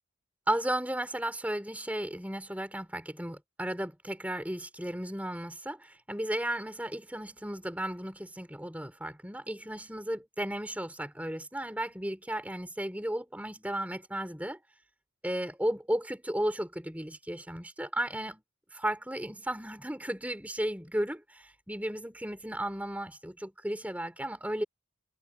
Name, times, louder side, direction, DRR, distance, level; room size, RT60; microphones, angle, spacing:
voice 1, 0.5-14.6 15.2-18.4 18.7-24.6, right 1 dB, 5° right, 3.3 m, -34 dB
head